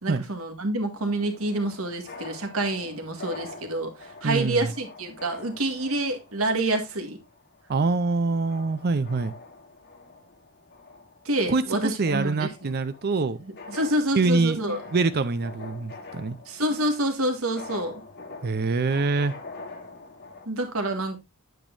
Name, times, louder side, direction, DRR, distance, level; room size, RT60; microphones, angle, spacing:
voice 1, 0.0-7.2 11.3-12.7 13.7-14.8 16.5-18.0 20.5-21.2, right 1 dB, 70° right, 1.9 m, -27 dB
sound 1, 1.0-20.5, left 3 dB, 50° left, 1.5 m, -45 dB
voice 2, 4.2-4.7 7.7-9.3 11.5-11.6 12.0-13.4 14.1-16.4 18.4-19.3, right 3 dB, 45° right, 0.5 m, -25 dB
9.1 x 8.2 x 2.6 m
head